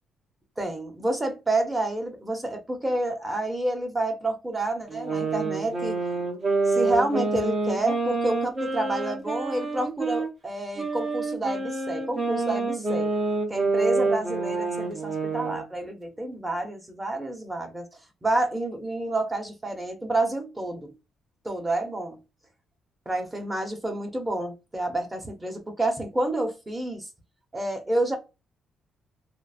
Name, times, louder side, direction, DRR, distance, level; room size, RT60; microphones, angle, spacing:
voice 1, 0.6-6.0 6.7-13.1 13.5-17.9 18.2-20.9 21.4-22.2 23.1-27.1 27.5-28.2, right 2 dB, 15° right, 0.8 m, -29 dB
sound 1, 4.9-10.3 10.8-15.6, right 3 dB, 45° right, 0.8 m, -27 dB
3.0 x 2.0 x 2.4 m
cardioid pair, 90°, 0 cm